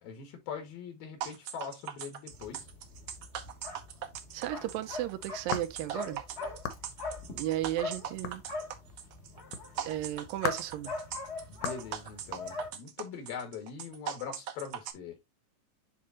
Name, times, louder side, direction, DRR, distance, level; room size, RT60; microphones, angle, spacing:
voice 1, 0.0-2.7 11.5-15.2, left 7 dB, 85° left, 3.7 m, -42 dB
sound 1, 1.2-14.9, right 9 dB, 75° right, 1.5 m, -40 dB
sound 2, 2.3-12.7, left 3 dB, 45° left, 0.8 m, -42 dB
voice 2, 4.3-6.2 7.3-8.4 9.8-11.0, right 14 dB, 90° right, 2.5 m, -34 dB
sound 3, 4.5-6.0 6.6-6.9 8.2-8.7 9.5-9.7 10.4-10.7 11.6-11.9, left 8 dB, 70° left, 2.4 m, -37 dB
10.0 x 3.7 x 2.9 m
omnidirectional pair, 4.0 m